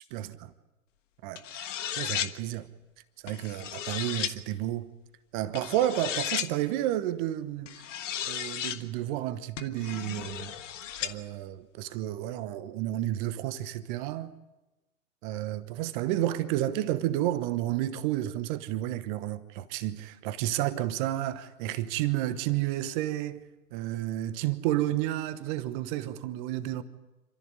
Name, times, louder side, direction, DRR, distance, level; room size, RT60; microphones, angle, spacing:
voice 1, 1.2-2.7 3.2-4.9 5.3-7.9 8.3-10.5 11.0-14.3 15.2-23.4 23.7-26.8, right 13 dB, 35° right, 1.1 m, -31 dB
sound 1, 1.3-2.3 3.3-4.3 5.5-6.5 7.7-8.8 9.6-11.1, left 10 dB, 55° left, 1.5 m, -34 dB
27.0 x 13.5 x 9.7 m
hypercardioid pair, 120°, 43 cm